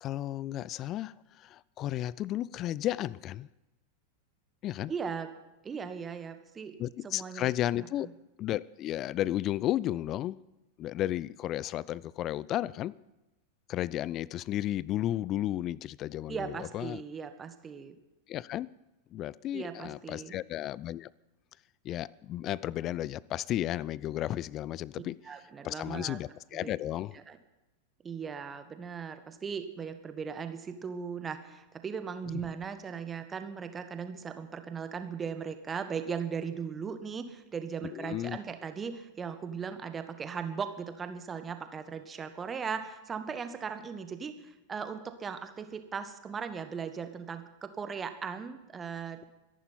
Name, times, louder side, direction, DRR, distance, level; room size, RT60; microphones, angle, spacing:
voice 1, 0.0-3.5 4.6-4.9 6.8-8.1 8.4-10.4 10.8-13.0 13.7-17.0 18.3-18.7 19.1-21.1 21.8-25.2 25.6-27.2 37.8-38.4, left 13 dB, 35° left, 23 dB, 0.4 m, -33 dB
voice 2, 4.9-5.3 5.6-6.8 7.0-7.5 7.8-7.9 16.3-17.9 19.5-20.4 25.2-26.2 26.5-26.7 27.1-27.4 28.0-49.2, right 6 dB, 20° right, 9 dB, 1.4 m, -38 dB
24.0 x 11.0 x 4.3 m, 1.0 s
figure-of-eight pair, 90°, 0 cm